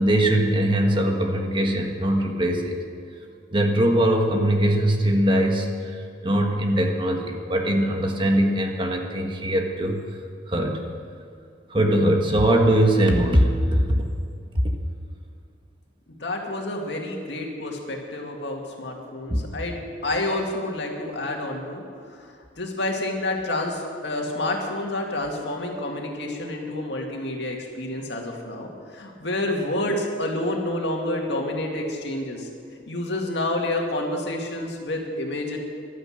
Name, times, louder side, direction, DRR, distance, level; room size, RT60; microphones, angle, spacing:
voice 1, 0.0-2.8 3.5-10.0 10.5-10.8 11.7-14.0 19.3-19.4, right 1 dB, 25° right, 2 dB, 1.4 m, -21 dB
voice 2, 16.1-21.8 22.2-22.3 22.6-32.5 32.9-35.6, left 1 dB, 70° left, 1 dB, 2.3 m, -29 dB
14.5 x 12.0 x 6.4 m, 2.4 s
head